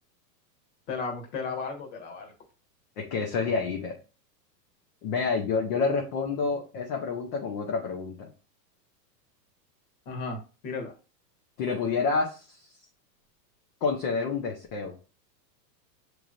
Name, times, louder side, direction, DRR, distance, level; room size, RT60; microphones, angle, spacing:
voice 1, 0.9-2.3 10.0-10.4 10.6-10.9, left 4 dB, 45° left, 3 dB, 1.5 m, -34 dB
voice 2, 3.0-4.0 5.0-8.3 11.6-12.6 13.8-14.9, left 4 dB, 25° left, 1 dB, 0.5 m, -28 dB
6.6 x 3.1 x 2.4 m, 0.34 s
supercardioid pair, 150°, 50 cm